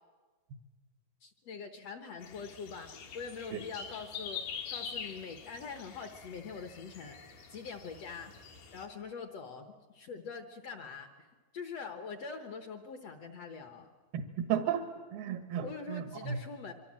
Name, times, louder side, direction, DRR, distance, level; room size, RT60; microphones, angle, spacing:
voice 1, 1.2-7.2 7.5-8.3 8.7-11.3 11.5-13.9 15.6-16.7, left 5 dB, 60° left, 6 dB, 1.7 m, -44 dB
sound 1, 2.2-8.9, left 7 dB, 80° left, 3.9 m, -45 dB
voice 2, 14.1-14.8 15.1-16.4, right 8 dB, 85° right, 8 dB, 3.2 m, -34 dB
25.0 x 24.5 x 7.5 m, 1.3 s
omnidirectional pair, 4.3 m